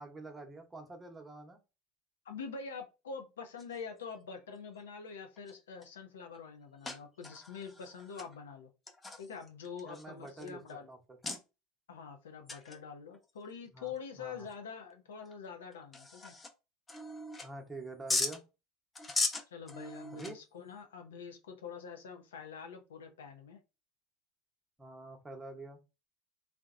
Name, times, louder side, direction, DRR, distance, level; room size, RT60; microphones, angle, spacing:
voice 1, 0.0-1.6 9.8-10.6 10.9-11.2 13.7-14.5 17.4-18.4 20.1-20.4 24.8-25.8, right 3 dB, 15° right, 3 dB, 0.8 m, -46 dB
voice 2, 2.3-8.7 9.2-10.9 11.9-16.4 19.5-23.6, left 6 dB, 85° left, 5 dB, 0.5 m, -45 dB
sound 1, 3.6-4.0 4.9-5.0 5.4-5.8 6.3-6.4 6.8-8.4 8.9-10.7 11.2-11.4 12.5-12.8 13.1-13.2 13.9-14.0 14.5-14.6 15.3-15.4 15.7-16.5 16.9-17.7 18.1-18.4 18.9-20.6, left 3 dB, 20° left, 0.5 m, -38 dB
2.7 x 2.1 x 2.4 m, 0.28 s
hypercardioid pair, 85°, 0 cm